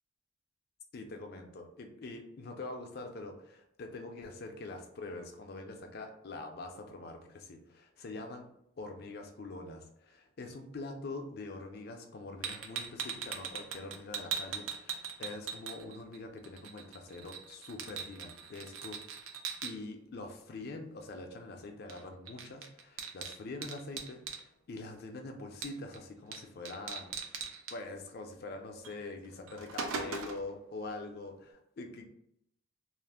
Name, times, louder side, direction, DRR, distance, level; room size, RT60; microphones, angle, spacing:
voice 1, 0.9-8.5 8.8-19.0 19.6-27.4 27.7-32.0, left 2 dB, 50° left, 4 dB, 0.4 m, -44 dB
sound 1, 12.4-16.2 16.4-19.7 21.9-22.0 22.3-24.4 25.6-26.0 26.3-26.4 26.7-27.8 28.8-29.0 29.3-30.5, right 6 dB, 85° right, 0.4 m, -40 dB
2.4 x 2.1 x 3.4 m, 0.75 s
head